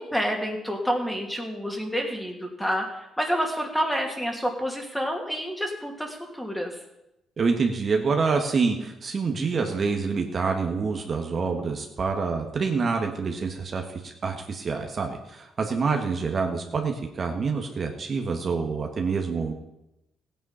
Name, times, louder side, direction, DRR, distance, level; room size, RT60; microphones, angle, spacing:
voice 1, 0.0-6.8, equal, 5° left, 2 dB, 2.7 m, -28 dB
voice 2, 7.4-19.5, right 4 dB, 45° right, 3 dB, 1.6 m, -27 dB
15.5 x 9.3 x 5.7 m, 0.88 s
cardioid pair, 90°, 0 cm